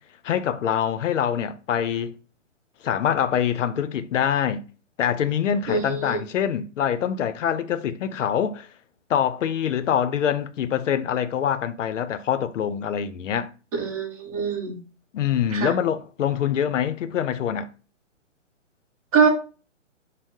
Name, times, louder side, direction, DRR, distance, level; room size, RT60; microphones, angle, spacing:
voice 1, 0.2-2.1 2.8-4.6 5.0-8.7 9.1-13.5 15.1-17.7, left 9 dB, 75° left, 0.5 m, -24 dB
voice 2, 5.7-6.2 13.8-14.8 15.5-15.7 19.1-19.3, right 5 dB, 30° right, 0.7 m, -23 dB
2.6 x 2.0 x 3.5 m
hypercardioid pair, 140°, 37 cm